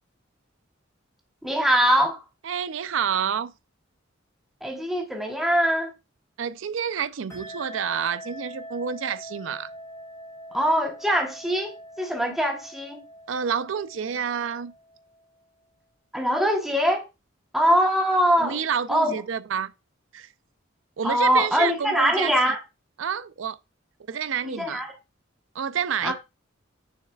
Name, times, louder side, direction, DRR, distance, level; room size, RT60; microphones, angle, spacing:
voice 1, 1.4-2.2 4.6-5.9 10.5-13.0 16.1-17.1 17.5-18.6 18.9-19.1 21.0-22.6 24.4-24.9 26.0-26.1, equal, ahead, 1.0 m, -23 dB
voice 2, 2.4-3.5 6.4-9.7 13.3-14.7 18.4-19.7 20.1-20.3 21.0-22.3 23.0-23.6 24.1-24.8 25.5-26.1, right 7 dB, 70° right, 0.5 m, -28 dB
sound 1, 7.3-15.4, equal, 15° left, 2.4 m, -43 dB
6.5 x 6.5 x 2.3 m
head